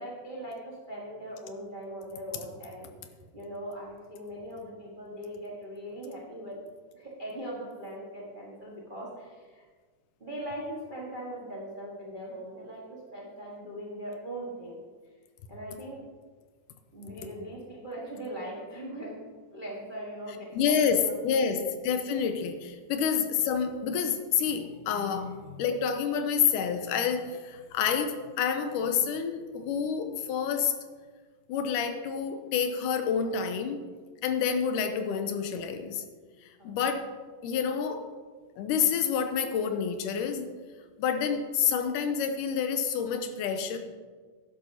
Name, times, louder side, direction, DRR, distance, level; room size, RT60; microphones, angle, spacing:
voice 1, 0.0-2.9 3.3-6.6 6.9-9.6 10.2-14.8 15.5-16.1 16.9-19.2 19.5-21.6 36.6-36.7, right 1 dB, 80° right, -4 dB, 0.4 m, -40 dB
voice 2, 20.5-30.7 31.5-33.8 34.2-36.0 36.6-37.0 37.4-38.0 38.6-40.5 41.0-43.8, left 7 dB, 85° left, 7 dB, 2.2 m, -28 dB
11.5 x 11.0 x 2.8 m, 1.5 s
omnidirectional pair, 3.8 m